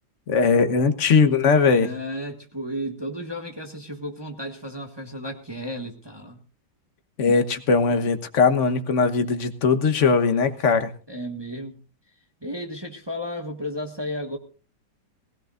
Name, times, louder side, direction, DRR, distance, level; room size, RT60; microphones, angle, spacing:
voice 1, 0.3-1.9 7.2-10.9, left 5 dB, 45° left, 8 dB, 1.4 m, -20 dB
voice 2, 1.8-6.4 11.1-11.8 12.4-14.4, equal, 15° right, 2 dB, 1.4 m, -33 dB
20.5 x 16.5 x 2.5 m, 0.36 s
omnidirectional pair, 2.0 m